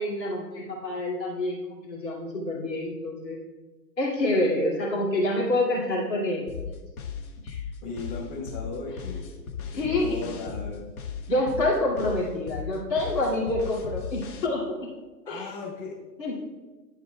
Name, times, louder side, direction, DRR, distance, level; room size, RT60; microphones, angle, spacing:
voice 1, 0.0-3.4 4.0-6.5 7.4-7.6 9.7-10.2 11.3-14.9 15.3-15.5 16.2-16.5, left 1 dB, 80° left, -4 dB, 2.5 m, -27 dB
sound 1, 6.5-14.5, left 6 dB, 55° left, 0.9 m, -36 dB
voice 2, 7.8-10.8 15.2-15.9, left 3 dB, 30° left, -5 dB, 1.3 m, -37 dB
10.5 x 7.2 x 2.2 m, 1.3 s
hypercardioid pair, 130°, 50 cm